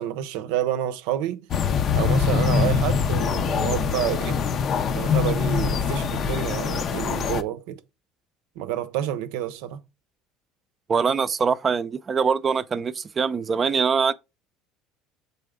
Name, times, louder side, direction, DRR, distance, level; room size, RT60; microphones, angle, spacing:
voice 1, 0.0-1.5 1.9-4.4 5.0-7.8 8.6-9.8, right 11 dB, 80° right, 0.6 m, -29 dB
sound 1, 1.5-7.4, left 6 dB, 50° left, 0.5 m, -23 dB
voice 2, 10.9-14.1, right 6 dB, 35° right, 0.5 m, -23 dB
6.6 x 4.2 x 3.6 m
supercardioid pair, 80°, 0 cm